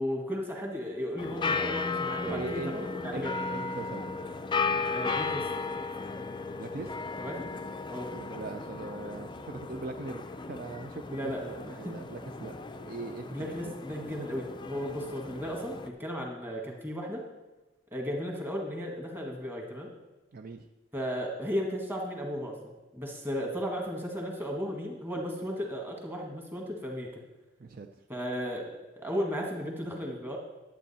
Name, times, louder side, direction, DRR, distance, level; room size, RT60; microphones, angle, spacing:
voice 1, 0.0-3.3 4.9-5.5 7.2-7.5 7.9-8.1 11.1-11.4 11.8-12.0 13.3-17.2 17.9-19.9 20.9-22.6 22.9-27.2 28.1-30.4, equal, 10° right, 0 dB, 1.7 m, -35 dB
sound 1, 1.2-15.9, left 4 dB, 25° left, 0.4 m, -35 dB
voice 2, 2.2-4.1 6.6-6.9 8.1-13.7 20.3-20.7 27.6-27.9, right 3 dB, 50° right, 5 dB, 0.5 m, -41 dB
11.0 x 8.3 x 4.2 m, 1.1 s
head